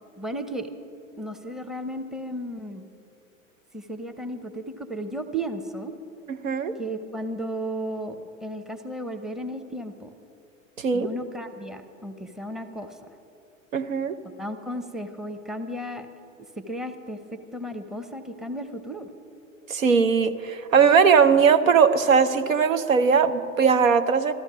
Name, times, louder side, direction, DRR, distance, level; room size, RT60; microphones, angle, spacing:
voice 1, 0.2-0.7 1.1-2.9 3.7-5.9 6.8-10.1 10.9-13.0 14.4-16.1 16.6-19.1, right 1 dB, ahead, 6 dB, 0.7 m, -34 dB
voice 2, 6.3-6.7 10.8-11.1 13.7-14.2 19.7-24.3, right 6 dB, 80° right, 10 dB, 0.8 m, -19 dB
13.5 x 13.5 x 6.2 m, 2.7 s
figure-of-eight pair, 85°, 40 cm